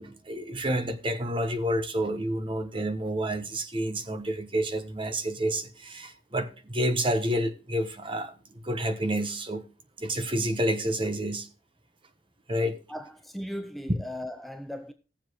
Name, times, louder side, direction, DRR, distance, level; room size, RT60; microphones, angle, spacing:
voice 1, 0.0-8.3 8.6-9.6 10.0-11.5 12.5-12.8, right 1 dB, 30° right, 1.1 m, -29 dB
voice 2, 12.9-14.9, equal, ahead, 0.5 m, -37 dB
17.0 x 7.3 x 3.1 m
head